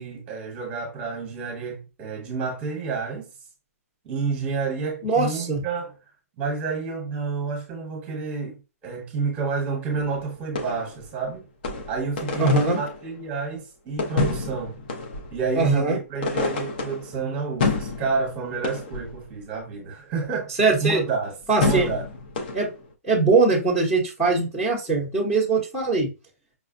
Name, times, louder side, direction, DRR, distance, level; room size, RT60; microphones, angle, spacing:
voice 1, 0.0-3.3 4.0-5.9 6.4-11.4 11.9-14.8 15.3-20.5 20.8-21.3 21.6-22.0, right 4 dB, 15° right, 1.1 m, -29 dB
voice 2, 5.0-5.6 12.4-12.8 15.5-16.0 20.6-21.0 21.5-21.9 22.5-22.7 23.0-26.1, right 3 dB, 5° left, 0.8 m, -21 dB
sound 1, 9.9-11.1 11.6-13.1 14.0-15.6 16.2-17.2 17.6-19.3 21.6-22.8, left 3 dB, 35° left, 0.6 m, -29 dB
5.1 x 2.2 x 2.5 m
hypercardioid pair, 170°, 8 cm